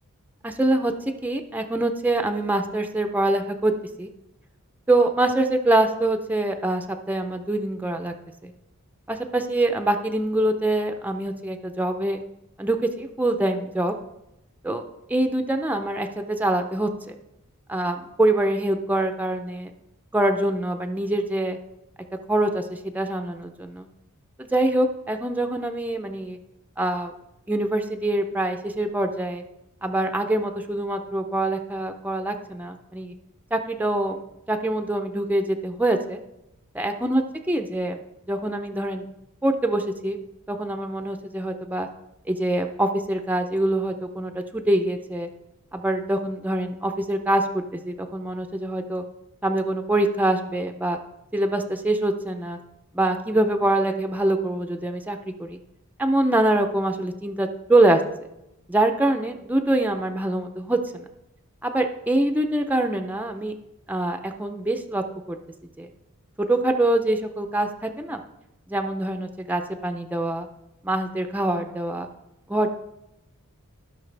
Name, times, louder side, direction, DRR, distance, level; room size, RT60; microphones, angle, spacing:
voice 1, 0.4-0.9 1.2-3.7 4.0-4.1 4.9-8.1 8.4-8.5 9.1-12.2 12.6-13.9 14.6-14.8 15.1-17.1 17.7-19.7 20.1-21.6 22.3-23.9 24.4-26.4 26.8-27.1 27.5-29.4 29.8-33.1 33.5-34.2 34.5-36.2 36.7-37.2 37.5-38.0 38.3-39.1 39.4-40.2 40.5-41.9 42.3-45.3 45.7-49.0 49.4-51.0 51.3-52.6 52.9-55.6 56.0-58.0 58.7-61.0 61.6-63.5 63.9-65.4 65.8-65.9 66.5-68.2 68.7-70.5 70.8-72.1 72.5-72.7, right 1 dB, 5° right, 5 dB, 0.6 m, -24 dB
15.5 x 5.6 x 3.4 m, 0.89 s
head